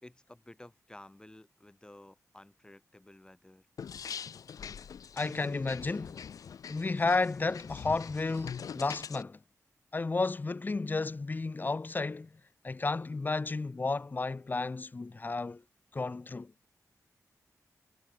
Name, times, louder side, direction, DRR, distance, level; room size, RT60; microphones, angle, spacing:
voice 1, 0.0-3.7, left 1 dB, 15° left, 4.3 m, -53 dB
sound 1, 3.8-9.2, left 7 dB, 70° left, 0.6 m, -43 dB
voice 2, 5.2-6.2 6.7-9.4 9.9-12.3 12.6-15.6 15.9-16.5, left 3 dB, 30° left, 0.9 m, -32 dB
wide cardioid pair, 105°, 6 cm